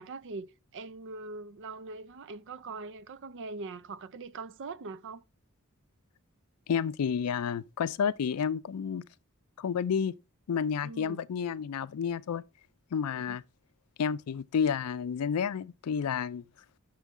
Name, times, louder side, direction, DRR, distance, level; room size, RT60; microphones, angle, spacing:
voice 1, 0.0-5.2 10.8-11.2 13.3-13.4, right 3 dB, 55° right, 0.5 m, -42 dB
voice 2, 6.7-9.1 9.6-10.2 10.5-12.4 12.9-13.4 14.0-16.4, left 7 dB, 85° left, 0.4 m, -30 dB
8.2 x 6.3 x 3.6 m
head